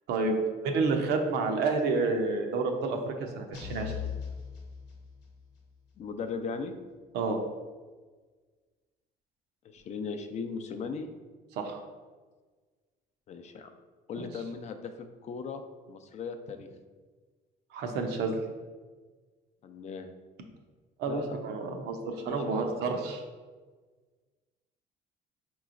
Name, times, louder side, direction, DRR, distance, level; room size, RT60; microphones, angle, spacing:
voice 1, 0.1-3.9 7.1-7.4 11.6-11.8 14.2-14.3 17.7-18.3 21.0-23.2, right 3 dB, 80° right, 3 dB, 0.6 m, -29 dB
sound 1, 3.5-5.4, left 8 dB, 85° left, 0.8 m, -39 dB
voice 2, 6.0-6.8 9.6-11.1 13.3-13.7 14.1-14.9 15.2-16.7 19.6-20.1 21.1-21.4 22.3-22.7, left 5 dB, 40° left, 7 dB, 0.4 m, -38 dB
4.7 x 3.0 x 2.5 m, 1.4 s
cardioid pair, 110°, 17 cm